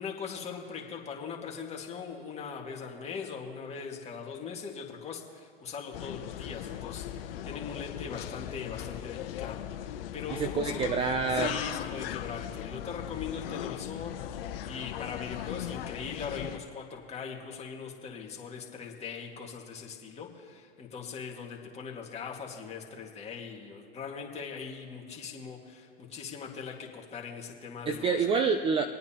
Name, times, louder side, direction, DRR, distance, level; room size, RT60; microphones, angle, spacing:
voice 1, 0.0-10.8 11.3-28.3, left 6 dB, 20° left, -1 dB, 2.0 m, -40 dB
sound 1, 5.9-16.6, left 11 dB, 65° left, 0.9 m, -38 dB
voice 2, 10.3-11.6 27.9-28.9, right 5 dB, 20° right, 8 dB, 0.4 m, -27 dB
25.0 x 9.2 x 2.9 m, 2.4 s
hypercardioid pair, 120°, 30 cm